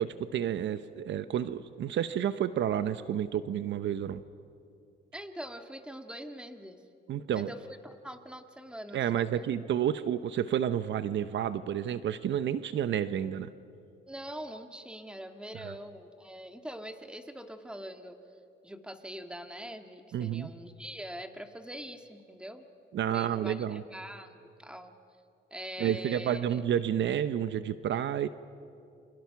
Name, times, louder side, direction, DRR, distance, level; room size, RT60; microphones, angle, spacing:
voice 1, 0.0-4.2 7.1-7.5 8.9-13.5 15.6-15.7 20.1-20.5 22.9-23.8 25.8-28.3, right 10 dB, 65° right, 13 dB, 0.8 m, -30 dB
voice 2, 5.1-6.8 7.3-9.5 14.1-18.2 18.6-22.6 23.1-24.9 25.5-26.6, equal, 5° right, 6 dB, 2.0 m, -43 dB
29.5 x 25.0 x 5.9 m, 2.5 s
cardioid pair, 90°, 20 cm